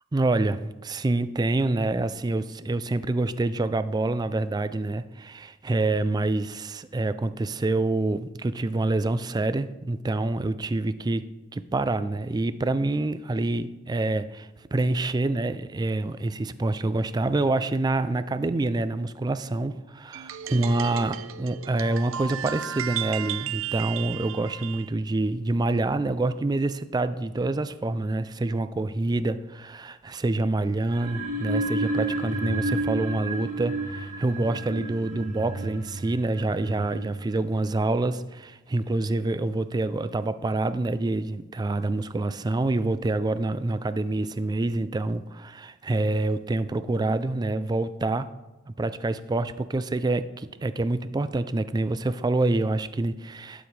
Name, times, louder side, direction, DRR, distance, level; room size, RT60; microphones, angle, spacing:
voice 1, 0.1-48.3 48.7-53.7, right 2 dB, 20° right, 13 dB, 0.3 m, -27 dB
sound 1, 20.1-24.9, right 10 dB, 80° right, 0.5 m, -34 dB
sound 2, 30.8-37.7, right 2 dB, 40° right, 1.4 m, -31 dB
11.5 x 7.1 x 3.3 m, 1.1 s
head